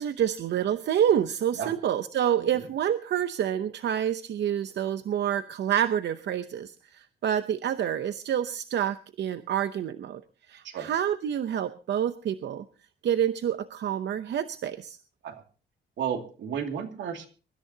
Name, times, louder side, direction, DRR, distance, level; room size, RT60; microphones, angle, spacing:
voice 1, 0.0-10.2 10.5-12.6 13.0-15.0, right 9 dB, 70° right, 11 dB, 0.8 m, -28 dB
voice 2, 16.0-17.3, right 8 dB, 90° right, 5 dB, 2.5 m, -33 dB
23.5 x 13.5 x 2.8 m, 0.37 s
cardioid pair, 115°, 19 cm